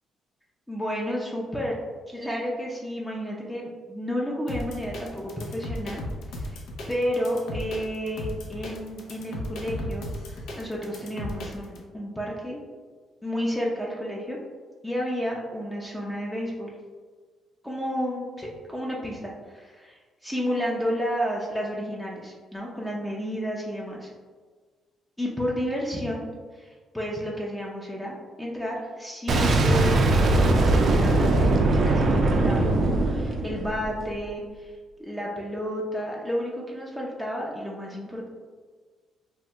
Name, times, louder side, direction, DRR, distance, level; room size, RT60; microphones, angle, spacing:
voice 1, 0.7-1.8 2.1-6.0 6.3-6.6 6.9-12.6 13.2-14.4 14.8-16.7 17.6-19.9 20.2-24.1 25.2-26.3 26.5-34.7 35.0-38.3, equal, 5° left, -3 dB, 0.5 m, -31 dB
sound 1, 4.5-11.8, left 1 dB, 75° left, 0.5 m, -35 dB
Boom, 29.3-34.1, right 2 dB, 55° right, 0.3 m, -21 dB
3.2 x 2.1 x 2.8 m, 1.5 s
supercardioid pair, 65°, 0 cm